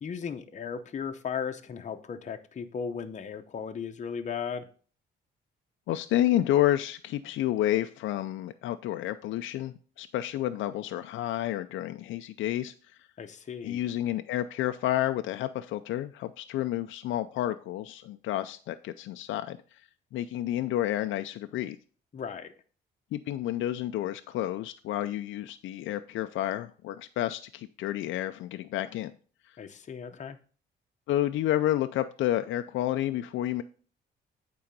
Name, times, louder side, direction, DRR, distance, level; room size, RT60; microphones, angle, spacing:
voice 1, 0.0-4.7 13.2-13.8 22.1-22.5 29.6-30.4, left 6 dB, 35° left, 6 dB, 0.7 m, -36 dB
voice 2, 5.9-12.7 13.6-19.6 20.1-21.8 23.1-29.1 31.1-33.6, left 13 dB, 75° left, 9 dB, 0.4 m, -30 dB
8.7 x 3.8 x 5.2 m, 0.41 s
cardioid pair, 90°, 20 cm